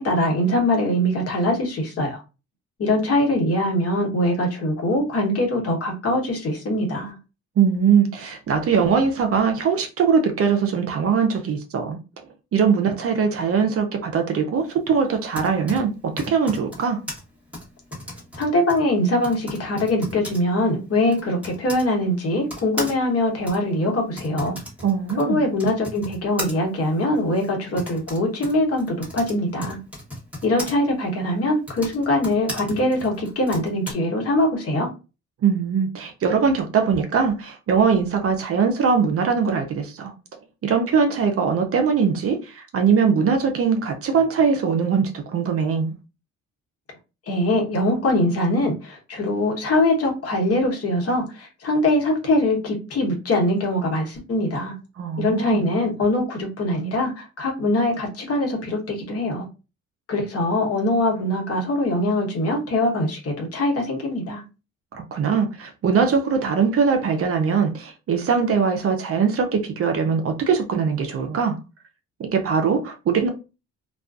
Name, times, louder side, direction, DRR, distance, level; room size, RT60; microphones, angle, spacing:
voice 1, 0.0-2.2 2.8-7.1 18.3-24.6 25.1-29.8 30.4-34.9 47.3-54.7 55.2-59.5 60.1-64.4, left 1 dB, 50° left, 1.0 m, -22 dB
voice 2, 7.6-12.0 12.5-17.0 24.8-25.4 35.4-40.1 40.6-45.9 55.0-55.6 64.9-71.6 72.2-73.3, right 6 dB, 50° right, 0.5 m, -21 dB
Typing, 15.1-21.9 22.5-30.7 31.5-33.9, left 1 dB, 5° right, 1.1 m, -37 dB
2.4 x 2.3 x 2.4 m
cardioid pair, 90°, 30 cm